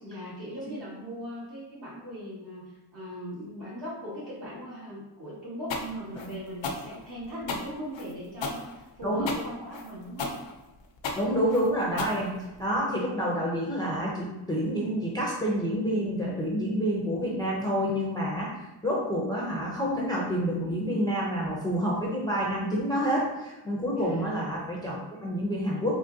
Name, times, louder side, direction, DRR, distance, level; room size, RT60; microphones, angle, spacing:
voice 1, 0.0-10.3 23.9-24.3, equal, 65° right, -8 dB, 1.4 m, -39 dB
sound 1, 5.7-12.8, left 3 dB, 90° left, 0.6 m, -34 dB
voice 2, 11.2-18.5 18.8-26.0, equal, 10° left, -5 dB, 0.5 m, -28 dB
3.7 x 3.0 x 2.6 m, 1.1 s
wide cardioid pair, 145°, 44 cm